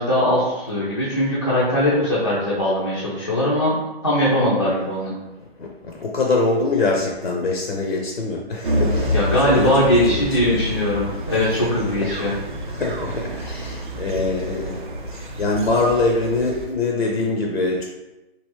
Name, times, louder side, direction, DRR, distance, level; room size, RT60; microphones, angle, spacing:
voice 1, 0.0-5.1 9.1-12.4, left 1 dB, 25° left, -9 dB, 0.4 m, -20 dB
voice 2, 5.6-9.7 10.1-10.6 12.7-14.7 15.1-17.8, left 3 dB, 70° left, 0 dB, 0.6 m, -23 dB
sound 1, 8.6-16.6, equal, 50° right, 0.5 m, -28 dB
3.1 x 2.5 x 3.0 m, 1.0 s
figure-of-eight pair, 135°, 31 cm